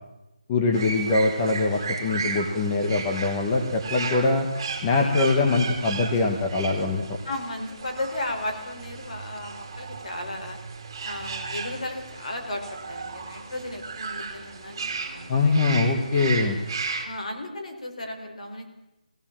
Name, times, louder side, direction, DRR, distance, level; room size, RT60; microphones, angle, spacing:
voice 1, 0.5-4.5 4.8-7.2 15.3-16.6, left 3 dB, 15° left, 1 dB, 1.3 m, -23 dB
sound 1, 0.7-17.1, right 4 dB, 25° right, 2.9 m, -35 dB
voice 2, 7.3-10.6 11.0-15.7 17.0-18.6, left 1 dB, 50° left, 4 dB, 4.6 m, -35 dB
20.5 x 17.0 x 7.6 m, 0.97 s
figure-of-eight pair, 175°, 5 cm